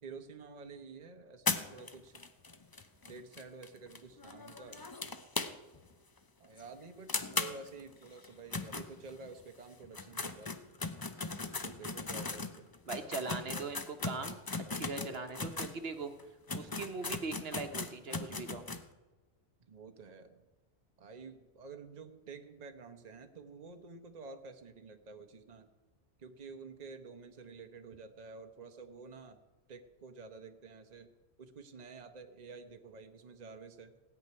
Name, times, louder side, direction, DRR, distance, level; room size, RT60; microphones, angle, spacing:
voice 1, 0.0-2.2 3.0-4.9 6.4-10.6 11.6-12.7 19.6-20.4 21.0-25.7 26.2-29.4 29.7-31.1 31.4-34.0, right 4 dB, 40° right, 6 dB, 1.0 m, -50 dB
sound 1, 1.5-5.9 6.2-6.3 6.6-6.7 7.1-9.4 9.8-15.8 16.2-16.3 16.5-18.8, left 3 dB, 25° left, 0.6 m, -38 dB
voice 2, 12.9-14.4 14.7-16.1 16.5-18.7, right 4 dB, 65° right, 7 dB, 1.3 m, -40 dB
17.0 x 6.0 x 9.5 m, 1.2 s
omnidirectional pair, 1.1 m